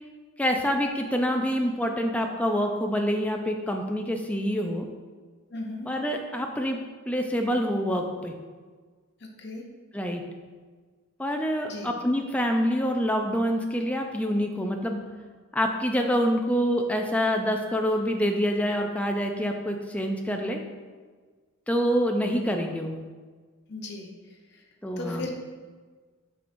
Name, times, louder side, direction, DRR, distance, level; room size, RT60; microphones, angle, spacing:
voice 1, 0.4-4.9 5.9-6.8 7.1-8.4 9.9-10.2 11.2-15.0 15.5-20.6 21.7-23.0 24.8-25.3, equal, 5° left, 3 dB, 0.4 m, -26 dB
voice 2, 5.5-5.9 9.4-9.6 11.7-11.9 23.7-24.1 24.5-24.6 25.0-25.3, left 2 dB, 55° left, 1 dB, 0.9 m, -36 dB
7.5 x 5.2 x 2.6 m, 1.5 s
head